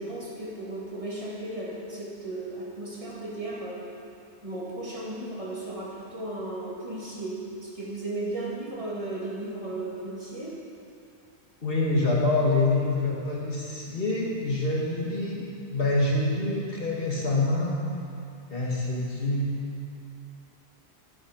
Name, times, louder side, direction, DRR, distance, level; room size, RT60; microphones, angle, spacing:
voice 1, 0.0-3.8 4.4-10.6, right 2 dB, 30° right, -6 dB, 2.4 m, -35 dB
voice 2, 11.6-15.4 15.7-17.8 18.5-19.5, left 2 dB, 55° left, -3 dB, 2.3 m, -26 dB
12.0 x 11.0 x 5.2 m, 2.5 s
omnidirectional pair, 1.1 m